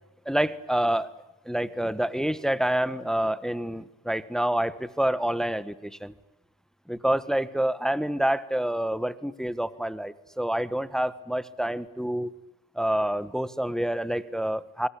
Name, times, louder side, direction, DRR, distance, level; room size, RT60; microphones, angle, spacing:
voice 1, 0.2-1.1 1.4-6.1 6.9-12.3 12.7-14.9, right 1 dB, ahead, 15 dB, 1.4 m, -27 dB
25.0 x 24.0 x 8.5 m, 0.92 s
cardioid pair, 95°, 45 cm